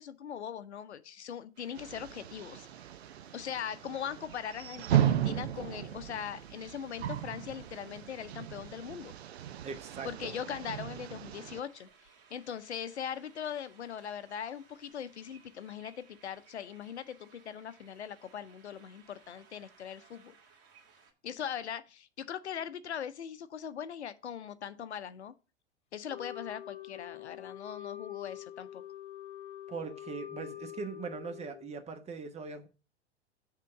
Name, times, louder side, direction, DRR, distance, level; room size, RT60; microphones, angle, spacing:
voice 1, 0.0-2.7 3.3-9.1 10.0-11.9 12.3-20.3 21.2-25.3 25.9-28.8, left 8 dB, 75° left, 0.6 m, -40 dB
sound 1, 1.5-21.1, right 6 dB, 45° right, 2.0 m, -61 dB
sound 2, 1.8-11.6, right 11 dB, 70° right, 0.6 m, -35 dB
voice 2, 9.6-10.3 29.7-32.7, right 5 dB, 20° right, 1.0 m, -41 dB
Wind instrument woodwind instrument, 26.1-31.7, left 12 dB, 20° left, 0.6 m, -45 dB
7.4 x 3.7 x 6.3 m
figure-of-eight pair, 95°, 34 cm